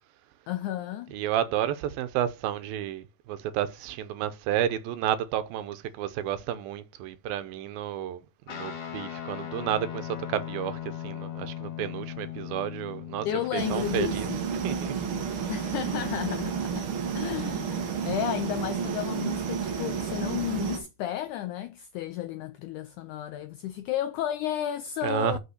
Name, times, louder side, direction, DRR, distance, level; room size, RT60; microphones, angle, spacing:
voice 1, 0.5-1.1 13.3-14.5 15.5-16.9 17.1-25.4, left 11 dB, 85° left, 1.7 m, -33 dB
voice 2, 1.1-13.3 13.5-14.3 14.6-14.9 25.0-25.4, right 11 dB, 80° right, 2.5 m, -31 dB
Guitar, 8.5-16.1, left 10 dB, 50° left, 2.2 m, -39 dB
sound 1, 13.6-20.8, right 6 dB, 65° right, 1.3 m, -31 dB
6.1 x 5.4 x 6.4 m
omnidirectional pair, 4.2 m